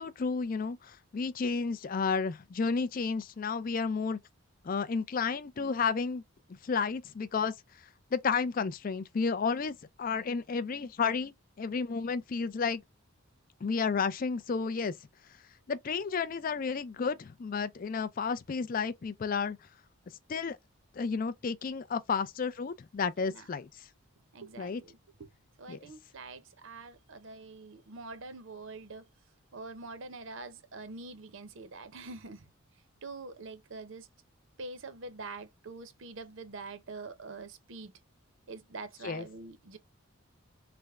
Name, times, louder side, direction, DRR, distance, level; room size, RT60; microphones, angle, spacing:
voice 1, 0.0-4.2 4.6-6.2 6.6-7.5 8.1-12.8 13.6-14.9 15.7-19.6 20.3-20.6 20.9-23.7 24.6-24.8 25.7-25.8 39.0-39.3, left 5 dB, 40° left, 0.3 m, -32 dB
voice 2, 23.2-23.5 24.3-25.3 25.6-29.1 29.5-32.5 33.0-34.1 34.6-37.9 38.5-39.8, right 3 dB, 60° right, 0.7 m, -45 dB
3.3 x 2.1 x 3.5 m
head